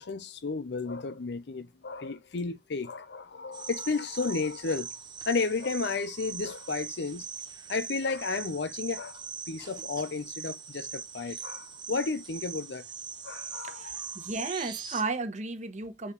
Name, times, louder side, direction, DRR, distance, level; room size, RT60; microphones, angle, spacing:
voice 1, 0.0-4.9 5.3-7.3 7.7-9.2 9.5-12.8 13.2-14.0, left 4 dB, 70° left, 0.6 m, -33 dB
sound 1, 3.5-15.0, right 6 dB, 25° right, 0.8 m, -41 dB
voice 2, 13.6-16.1, right 3 dB, 40° right, 1.0 m, -34 dB
5.1 x 4.1 x 5.2 m
head